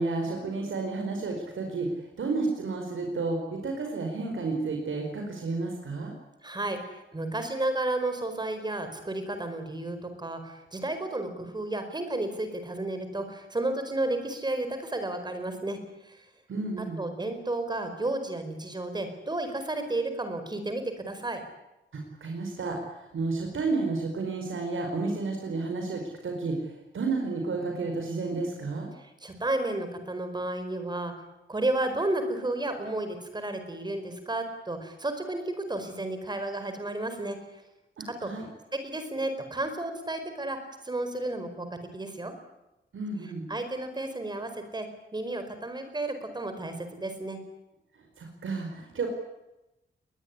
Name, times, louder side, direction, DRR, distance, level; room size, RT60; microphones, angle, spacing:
voice 1, 0.0-6.1 16.5-17.0 21.9-28.9 38.0-38.5 42.9-43.5 48.2-49.1, right 3 dB, 85° right, 3 dB, 4.9 m, -31 dB
voice 2, 6.4-16.2 17.0-21.4 29.0-31.1 31.5-37.4 38.2-38.3 38.8-40.6 40.8-41.7 41.9-42.3 43.2-44.9 45.1-47.4, right 2 dB, 20° right, 8 dB, 4.7 m, -32 dB
22.0 x 20.5 x 9.6 m, 0.94 s
wide cardioid pair, 180°, 20 cm